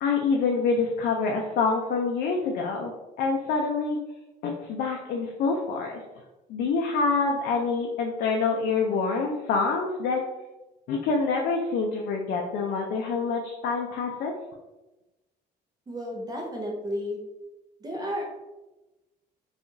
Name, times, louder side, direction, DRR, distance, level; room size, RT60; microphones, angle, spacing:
voice 1, 0.0-2.9 3.2-4.0 4.4-6.0 6.5-10.2 10.9-14.3, left 4 dB, 65° left, 1 dB, 0.4 m, -26 dB
voice 2, 15.9-17.2 17.8-18.2, equal, 25° right, -1 dB, 0.6 m, -32 dB
2.8 x 2.4 x 2.5 m, 1.1 s
cardioid pair, 110°, 17 cm